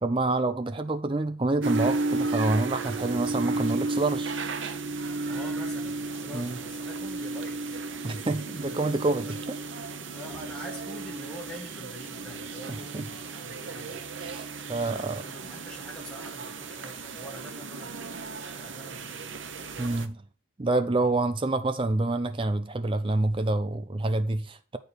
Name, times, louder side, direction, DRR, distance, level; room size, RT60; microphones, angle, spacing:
voice 1, 0.0-4.3 6.3-6.6 8.0-9.6 12.9-13.0 14.2-15.2 19.8-20.2 20.6-24.8, right 2 dB, 25° right, 0.5 m, -27 dB
sound 1, 1.6-20.1, right 3 dB, 85° right, 0.9 m, -34 dB
voice 2, 5.3-7.8 8.6-8.8 9.0-9.4 10.1-14.1 14.7-18.1 18.6-19.4 21.0-21.1, equal, 5° left, 2.0 m, -45 dB
9.6 x 4.5 x 5.0 m
head